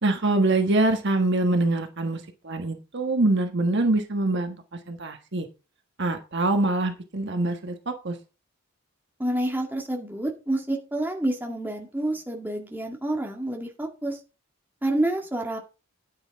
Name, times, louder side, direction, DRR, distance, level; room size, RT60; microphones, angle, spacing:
voice 1, 0.0-4.6 4.9-5.5 6.0-8.2, right 2 dB, 50° right, 6 dB, 1.4 m, -24 dB
voice 2, 9.2-14.2 14.8-15.6, right 1 dB, 10° right, 1 dB, 1.9 m, -28 dB
9.9 x 9.4 x 3.6 m, 0.30 s
head